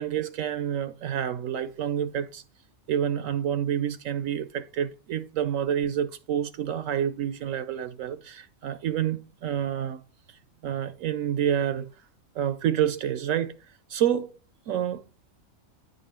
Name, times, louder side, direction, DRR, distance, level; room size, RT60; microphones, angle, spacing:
voice 1, 0.0-2.4 2.9-10.0 10.3-11.9 12.3-13.6 13.9-14.3 14.7-15.0, right 9 dB, 75° right, 1.0 m, -28 dB
9.8 x 5.4 x 4.3 m
omnidirectional pair, 1.4 m